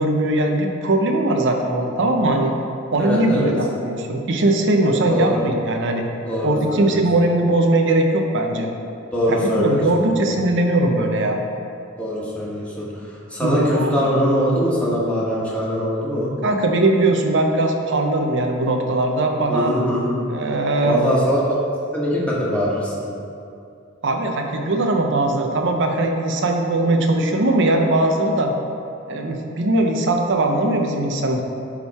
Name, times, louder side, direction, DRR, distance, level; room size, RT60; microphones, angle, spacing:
voice 1, 0.0-2.5 2.9-6.0 6.4-8.7 9.3-11.4 13.4-14.2 16.4-19.7 20.3-21.0 24.0-28.5 29.1-31.4, right 2 dB, 65° right, 3 dB, 0.7 m, -20 dB
voice 2, 3.0-3.5 5.1-5.4 6.3-6.9 9.1-10.3 12.0-12.9 13.3-16.3 19.5-20.2 20.8-21.5 21.9-23.1, equal, 5° left, -7 dB, 1.5 m, -22 dB
11.0 x 3.6 x 4.2 m, 2.6 s
head